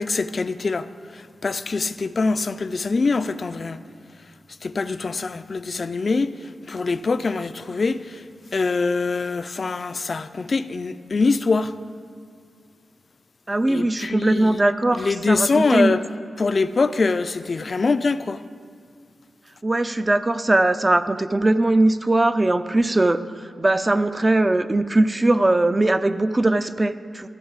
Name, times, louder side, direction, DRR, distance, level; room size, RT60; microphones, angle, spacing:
voice 1, 0.0-3.8 4.6-6.3 6.7-8.2 8.5-11.7 13.7-14.6 14.9-16.0 16.4-18.4, left 4 dB, 45° left, 0.3 m, -24 dB
voice 2, 13.5-15.9 19.6-23.2 23.6-27.3, right 2 dB, 20° right, 0.4 m, -20 dB
14.0 x 6.9 x 3.9 m
wide cardioid pair, 95°, 0 cm